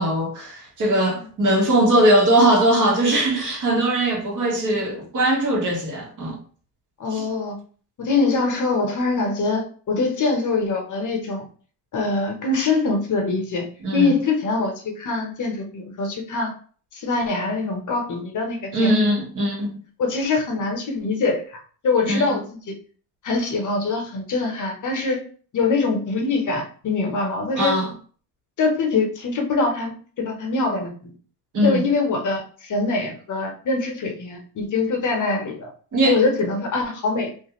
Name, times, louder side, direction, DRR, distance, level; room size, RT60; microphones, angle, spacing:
voice 1, 0.0-6.4 7.1-7.2 13.8-14.1 18.7-19.8 22.1-22.4 27.6-27.9 31.5-31.9 35.9-36.2, right 1 dB, 45° right, 1.2 m, -20 dB
voice 2, 7.0-7.5 8.0-11.5 11.9-16.5 16.9-18.9 20.0-22.4 22.7-22.8 23.2-25.2 25.5-27.7 28.6-31.1 31.6-35.7 36.1-37.3, left 3 dB, 45° left, 0.9 m, -23 dB
2.5 x 2.5 x 3.0 m
supercardioid pair, 85°, 44 cm